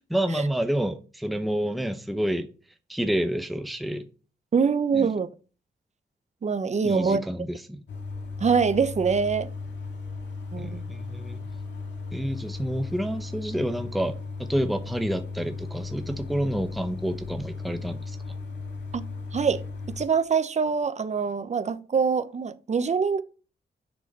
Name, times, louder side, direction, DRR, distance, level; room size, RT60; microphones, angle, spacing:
voice 1, 0.1-2.5 2.9-4.1 4.9-5.1 6.8-7.8 10.6-11.4 12.1-14.1 14.4-18.2, equal, ahead, 0.8 m, -29 dB
voice 2, 4.5-5.3 6.4-7.2 8.4-9.5 10.5-10.8 18.9-19.0 19.3-19.6 20.0-23.2, right 5 dB, 40° right, 0.7 m, -24 dB
sound 1, 7.9-20.1, left 3 dB, 75° left, 2.1 m, -36 dB
7.8 x 6.3 x 5.3 m
wide cardioid pair, 115°, 18 cm